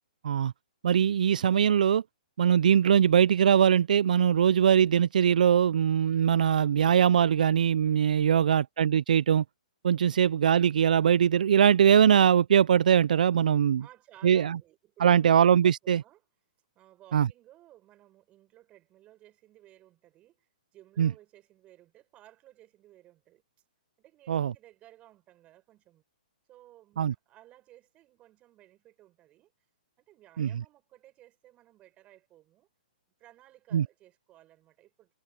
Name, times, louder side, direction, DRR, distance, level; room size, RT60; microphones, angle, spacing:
voice 1, 0.8-2.0 2.4-9.4 9.8-13.8 14.2-14.6 15.0-16.0 17.1-17.3 21.0-21.1 24.3-24.5 27.0-27.1 30.4-30.5 33.7-33.8, right 8 dB, 70° right, 0.3 m, -22 dB
voice 2, 13.8-15.4 15.8-16.2 16.7-23.4 24.0-26.0 26.5-29.5 30.0-32.7 33.2-35.1, right 14 dB, 25° right, 6.4 m, -57 dB
hypercardioid pair, 130°, 5 cm